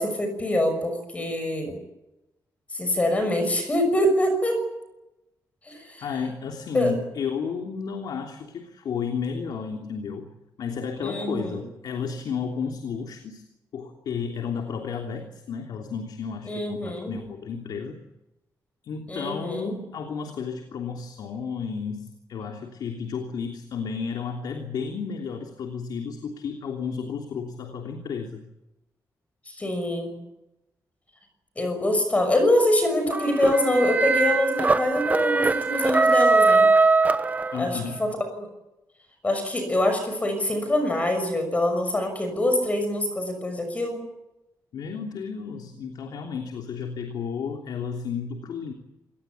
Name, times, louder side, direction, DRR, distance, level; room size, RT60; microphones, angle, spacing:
voice 1, 0.0-1.8 2.7-4.6 5.6-6.1 6.7-7.0 11.0-11.6 16.5-17.2 19.1-19.8 29.5-30.1 31.6-36.7 37.6-38.1 38.3-38.5 39.2-44.0, left 1 dB, 20° left, 7 dB, 6.1 m, -24 dB
voice 2, 6.0-10.3 10.6-13.4 13.7-18.0 18.8-28.4 37.5-38.0 44.7-48.7, left 6 dB, 85° left, 4 dB, 3.2 m, -32 dB
sound 1, 33.1-37.9, right 3 dB, 25° right, 1.1 m, -21 dB
27.0 x 19.5 x 8.4 m, 0.93 s
wide cardioid pair, 170°, 7 cm